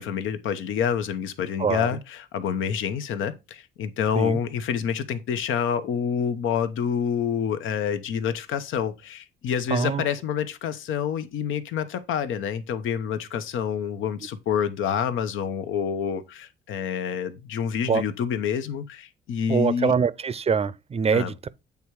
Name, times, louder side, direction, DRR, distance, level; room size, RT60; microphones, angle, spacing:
voice 1, 0.0-19.9 21.1-21.3, left 8 dB, 80° left, 0.9 m, -27 dB
voice 2, 9.7-10.0 17.9-18.0 19.5-21.5, right 6 dB, 30° right, 0.5 m, -24 dB
8.1 x 3.5 x 4.7 m
cardioid pair, 90°, 20 cm